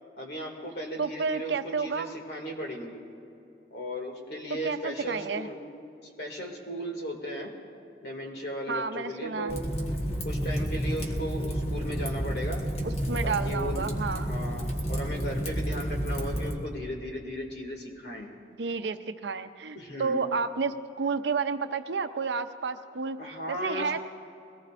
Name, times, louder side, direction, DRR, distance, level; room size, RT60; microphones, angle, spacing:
voice 1, 0.2-3.0 3.7-5.6 6.2-7.5 8.0-9.6 10.2-12.6 13.2-13.9 14.1-18.3 19.8-20.3 23.2-24.0, equal, 60° left, 0 dB, 2.3 m, -36 dB
voice 2, 1.0-2.1 4.5-5.5 8.7-9.5 12.8-14.3 18.5-24.0, right 5 dB, 75° right, 9 dB, 0.6 m, -31 dB
Fire, 9.5-16.6, equal, 35° left, 1.4 m, -30 dB
22.5 x 18.0 x 2.5 m, 2.8 s
head